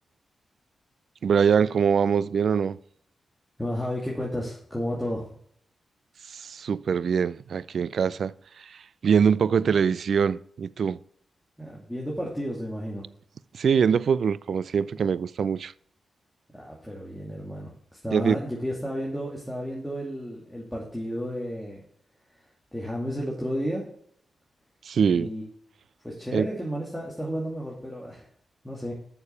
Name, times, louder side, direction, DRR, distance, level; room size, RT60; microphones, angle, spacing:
voice 1, 1.2-2.8 6.3-11.0 13.5-15.7 18.1-18.4 24.9-25.3 26.3-26.5, right 6 dB, 70° right, 0.3 m, -23 dB
voice 2, 3.6-5.4 11.6-13.0 16.5-21.8 22.7-23.9 25.1-25.4 26.0-28.3 28.6-28.9, equal, 5° left, 2.5 m, -32 dB
6.9 x 6.7 x 6.8 m
supercardioid pair, 40°, 0 cm